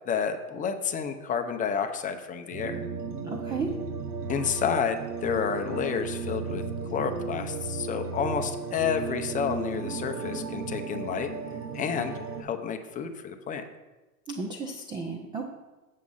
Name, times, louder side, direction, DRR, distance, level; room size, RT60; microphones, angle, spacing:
voice 1, 0.1-2.8 4.3-6.6 6.9-11.3 11.7-12.1 12.4-13.6, left 7 dB, 15° left, 6 dB, 0.7 m, -30 dB
sound 1, 2.5-12.4, right 5 dB, 85° right, 1.1 m, -35 dB
voice 2, 3.2-3.7 14.3-15.4, right 4 dB, 10° right, 2 dB, 0.4 m, -33 dB
7.5 x 7.5 x 5.5 m, 1.2 s
hypercardioid pair, 125°, 46 cm